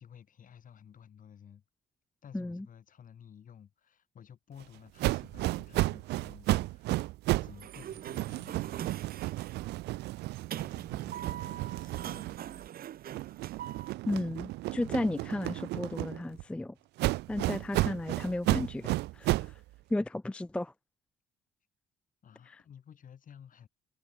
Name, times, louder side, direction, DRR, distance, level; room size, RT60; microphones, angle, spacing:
voice 1, 0.0-1.6 2.2-7.1 7.4-8.8 10.5-12.3 22.2-23.7, left 8 dB, 50° left, 4.9 m, -54 dB
voice 2, 2.3-2.7 14.1-16.7 17.3-19.6 19.9-20.7 22.5-22.6, left 1 dB, 5° left, 0.4 m, -34 dB
sound 1, 5.0-7.6 7.9-12.7 13.1-16.4 17.0-19.6, right 19 dB, 75° right, 0.6 m, -33 dB
Sliding door, 7.4-13.9, right 11 dB, 60° right, 1.7 m, -43 dB
supercardioid pair, 80°, 17 cm